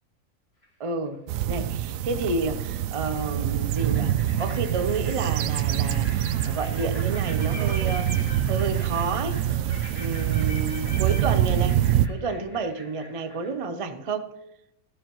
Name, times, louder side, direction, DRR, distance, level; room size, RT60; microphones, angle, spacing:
sound 1, 0.6-1.1 2.6-2.7 3.1-13.5, left 1 dB, 40° left, 2.8 m, -44 dB
voice 1, 0.8-1.2 1.5-8.2 8.5-9.4 9.9-11.8 12.1-14.3, right 3 dB, 40° right, 8 dB, 0.4 m, -30 dB
sound 2, 1.3-12.1, right 11 dB, 70° right, 0.9 m, -25 dB
13.5 x 13.5 x 3.0 m, 0.89 s
omnidirectional pair, 1.6 m